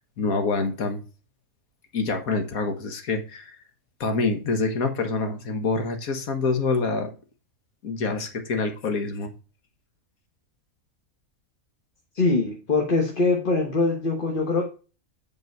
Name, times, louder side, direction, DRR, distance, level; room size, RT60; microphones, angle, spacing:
voice 1, 0.2-1.0 1.9-3.6 4.0-7.1 7.8-9.3, left 3 dB, 75° left, 1.8 m, -26 dB
voice 2, 12.1-14.7, left 3 dB, 40° left, 1.3 m, -23 dB
8.0 x 5.3 x 4.6 m
omnidirectional pair, 1.5 m